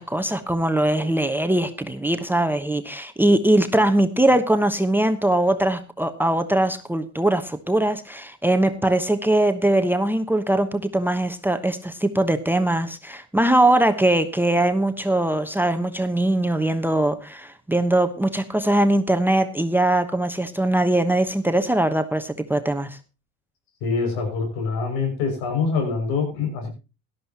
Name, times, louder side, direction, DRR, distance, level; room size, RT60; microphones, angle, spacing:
voice 1, 0.0-23.0, right 1 dB, 5° right, 11 dB, 1.1 m, -21 dB
voice 2, 23.8-26.7, left 4 dB, 70° left, 4 dB, 6.4 m, -25 dB
17.5 x 12.5 x 2.9 m, 0.30 s
hypercardioid pair, 80°, 39 cm